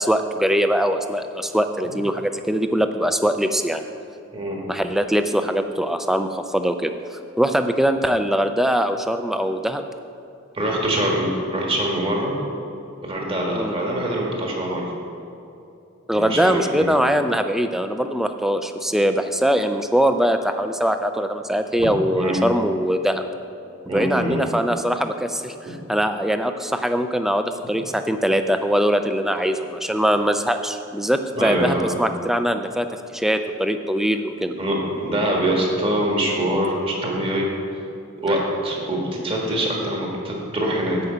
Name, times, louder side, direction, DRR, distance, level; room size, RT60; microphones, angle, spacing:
voice 1, 0.0-3.8 4.7-9.8 13.5-13.7 16.1-23.2 23.9-34.5, equal, ahead, 8 dB, 0.4 m, -22 dB
voice 2, 10.5-12.3 13.0-14.9 16.1-16.9 21.8-21.9 22.2-22.4 23.9-24.4 25.6-25.7 31.3-31.9 34.6-37.5 38.2-41.1, right 1 dB, 25° right, -2 dB, 1.7 m, -24 dB
11.0 x 4.9 x 8.0 m, 2.7 s
head